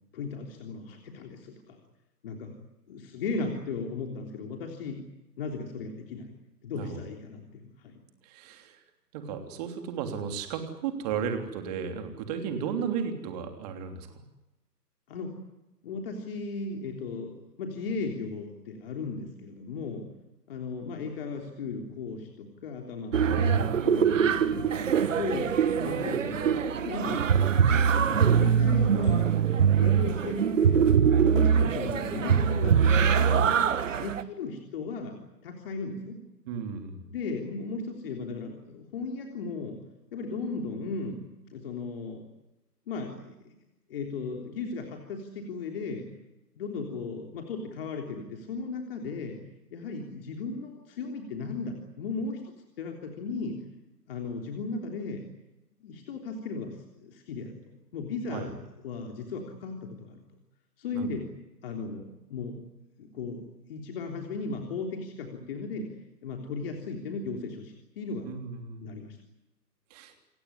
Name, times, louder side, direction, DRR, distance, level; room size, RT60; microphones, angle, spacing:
voice 1, 0.1-1.8 2.2-2.6 2.9-5.0 5.4-6.3 6.6-8.0 15.1-15.4 15.8-20.1 20.5-24.7 25.1-27.3 27.9-30.8 31.2-33.6 34.0-36.2 37.1-39.8 40.1-42.2 42.9-43.5 43.9-46.1 46.6-49.4 49.7-52.4 52.8-53.6 54.1-55.2 55.8-56.8 57.0-58.6 58.8-60.2 60.8-61.2 61.6-62.6 63.0-63.4 63.7-65.9 66.2-68.3 68.8-69.2, left 4 dB, 35° left, 2 dB, 3.5 m, -36 dB
voice 2, 8.2-8.8 9.1-14.2 23.2-23.4 36.5-37.0 58.3-58.5 60.9-61.1 68.2-68.9 69.9-70.1, right 7 dB, 25° right, 6 dB, 3.2 m, -34 dB
sound 1, 23.1-34.2, right 7 dB, 50° right, 1.5 m, -23 dB
sound 2, 24.0-28.6, left 1 dB, 85° left, 5.1 m, -48 dB
28.0 x 16.5 x 9.8 m, 0.98 s
hypercardioid pair, 150°, 49 cm